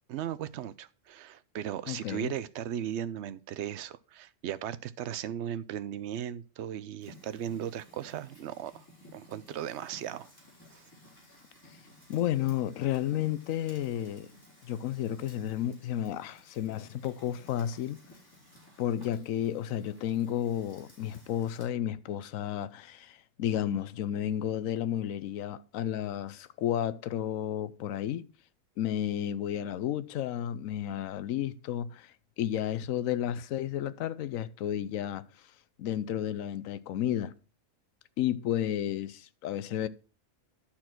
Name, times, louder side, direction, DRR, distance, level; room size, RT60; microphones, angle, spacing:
voice 1, 0.1-8.8 9.1-10.3 10.7-10.8, right 10 dB, 65° right, 0.8 m, -37 dB
voice 2, 1.9-2.3 12.1-14.3 14.7-18.0 18.8-28.2 28.8-35.3 35.8-37.3 38.2-39.9, left 11 dB, 90° left, 1.0 m, -32 dB
Fire, 7.0-21.7, left 1 dB, 15° left, 3.6 m, -56 dB
11.5 x 4.4 x 5.9 m
omnidirectional pair, 1.4 m